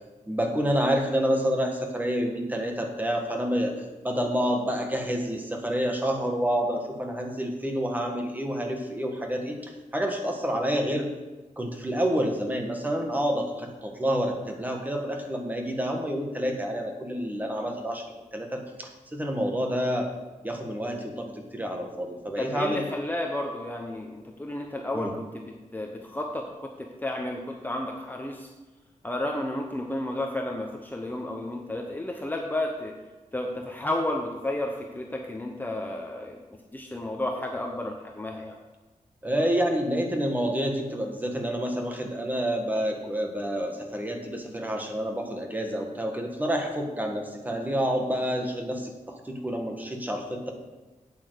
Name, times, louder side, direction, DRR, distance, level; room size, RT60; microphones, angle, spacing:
voice 1, 0.3-3.7 4.0-11.1 11.6-18.0 18.3-20.1 20.4-22.9 24.9-25.1 39.2-50.5, equal, 15° right, 2 dB, 1.5 m, -28 dB
voice 2, 22.4-25.4 25.7-28.5 29.0-32.9 33.3-36.4 36.7-38.5, left 1 dB, 15° left, 1 dB, 0.9 m, -32 dB
8.6 x 8.3 x 6.7 m, 1.2 s
wide cardioid pair, 165°, 13 cm